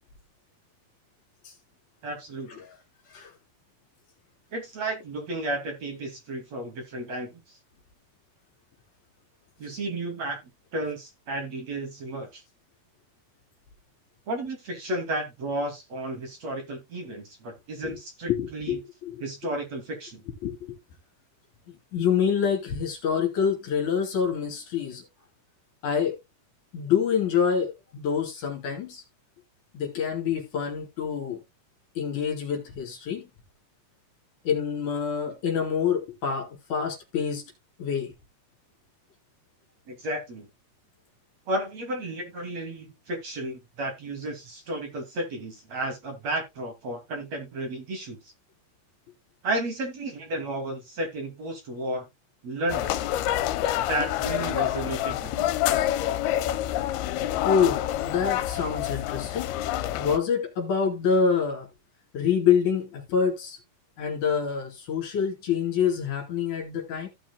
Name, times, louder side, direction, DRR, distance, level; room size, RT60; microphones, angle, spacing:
voice 1, 2.0-2.6 4.5-7.6 9.6-10.4 10.7-12.4 14.3-18.8 19.2-20.2 39.9-40.5 41.5-48.2 49.4-52.1 52.4-53.0 53.7-55.6, right 1 dB, 45° right, 3.3 m, -33 dB
voice 2, 18.3-19.2 20.4-20.8 21.9-25.1 25.8-26.2 26.7-29.0 29.7-31.4 32.0-33.3 34.4-37.5 37.8-38.1 57.4-59.5 60.0-61.7 62.1-63.6 64.0-67.1, left 7 dB, 55° left, 3.8 m, -26 dB
sound 1, 52.7-60.2, left 13 dB, 85° left, 2.6 m, -27 dB
15.5 x 6.1 x 2.3 m
omnidirectional pair, 4.5 m